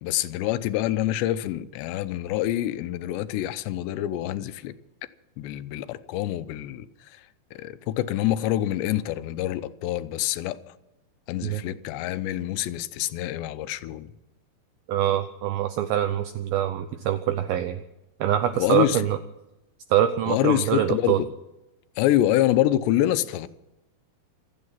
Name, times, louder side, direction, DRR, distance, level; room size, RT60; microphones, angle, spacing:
voice 1, 0.0-4.7 5.4-6.9 7.5-10.6 11.3-14.1 18.5-19.0 20.3-21.3 22.0-23.5, left 13 dB, 85° left, 2.8 m, -26 dB
voice 2, 14.9-17.8 18.2-19.2 19.9-21.2, right 11 dB, 80° right, 2.2 m, -24 dB
26.5 x 8.9 x 5.7 m
omnidirectional pair, 5.1 m